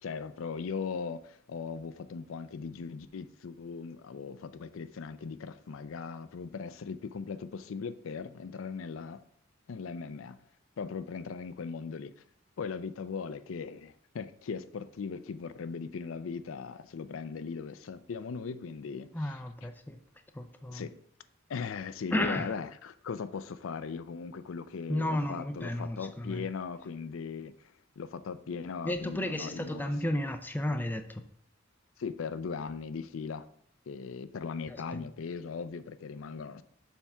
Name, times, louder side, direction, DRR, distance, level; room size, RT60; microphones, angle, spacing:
voice 1, 0.0-9.2 9.7-10.4 10.8-12.1 12.6-19.4 20.7-20.9 21.5-27.5 28.0-29.8 32.0-33.5 33.9-36.6, left 5 dB, 80° left, 0.4 m, -39 dB
voice 2, 19.1-20.0 20.3-20.9 22.1-22.5 24.9-26.5 28.8-31.2 34.7-35.1, left 1 dB, 10° left, 0.5 m, -33 dB
7.1 x 3.5 x 5.5 m
head